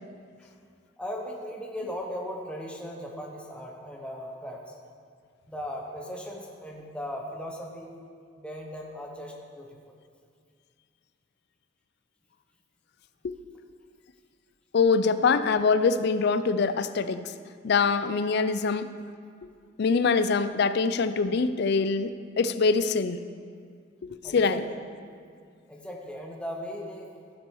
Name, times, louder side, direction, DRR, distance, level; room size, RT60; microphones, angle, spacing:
voice 1, 1.0-4.7 5.5-7.9 8.4-9.9 24.2-24.7 25.7-27.1, equal, 5° left, 0 dB, 0.9 m, -38 dB
voice 2, 14.7-17.3 17.6-18.9 19.8-23.2 24.0-24.6, left 4 dB, 60° left, 13 dB, 0.4 m, -24 dB
15.5 x 6.1 x 4.6 m, 2.1 s
head